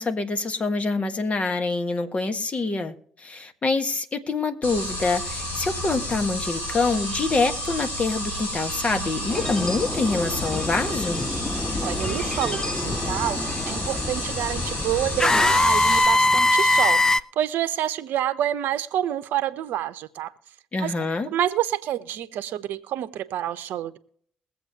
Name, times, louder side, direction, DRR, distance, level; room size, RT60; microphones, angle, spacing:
voice 1, 0.0-11.2 20.7-21.3, left 3 dB, 40° left, 1.5 m, -26 dB
sound 1, 4.6-16.1, equal, 70° left, 5.5 m, -31 dB
sound 2, 9.3-17.2, left 2 dB, 15° left, 0.4 m, -24 dB
voice 2, 11.8-20.3 20.8-20.9 21.3-24.0, right 11 dB, 70° right, 0.8 m, -28 dB
22.0 x 7.9 x 2.8 m
hypercardioid pair, 50°, 3 cm